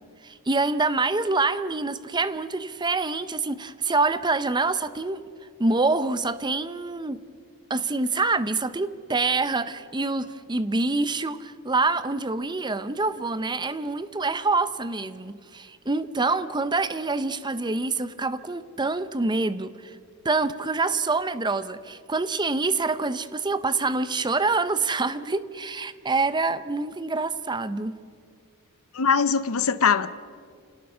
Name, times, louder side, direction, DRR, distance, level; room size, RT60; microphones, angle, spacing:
voice 1, 0.2-5.2 5.6-7.2 7.7-19.9 20.2-28.0, right 3 dB, 20° right, 13 dB, 0.7 m, -26 dB
voice 2, 28.9-30.1, left 6 dB, 65° left, 14 dB, 0.7 m, -22 dB
29.0 x 18.0 x 5.6 m, 2.2 s
head